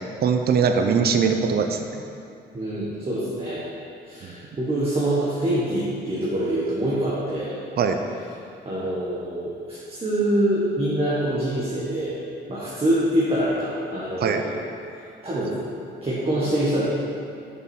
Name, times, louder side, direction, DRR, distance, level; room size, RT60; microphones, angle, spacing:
voice 1, 0.2-1.8 4.2-4.4 7.8-8.0 14.2-14.4, right 6 dB, 55° right, 6 dB, 0.6 m, -21 dB
voice 2, 2.5-3.6 4.0-7.6 8.6-12.2 12.5-14.5 15.2-15.6 16.0-16.8, right 1 dB, 30° right, -8 dB, 1.5 m, -25 dB
7.2 x 5.3 x 4.5 m, 2.5 s
cardioid pair, 90°, 19 cm